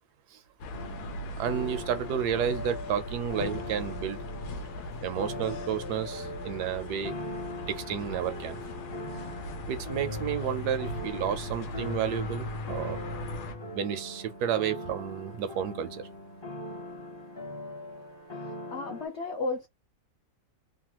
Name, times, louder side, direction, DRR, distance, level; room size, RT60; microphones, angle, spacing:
sound 1, 0.6-13.5, left 1 dB, 80° left, 1.2 m, -40 dB
sound 2, 0.7-19.1, left 1 dB, 25° left, 0.6 m, -40 dB
voice 1, 1.4-4.2 5.0-7.2 7.7-8.6 9.7-13.0 13.7-16.1, right 9 dB, 80° right, 1.2 m, -31 dB
voice 2, 18.4-19.7, left 3 dB, 60° left, 0.7 m, -34 dB
3.2 x 2.2 x 2.9 m
omnidirectional pair, 1.7 m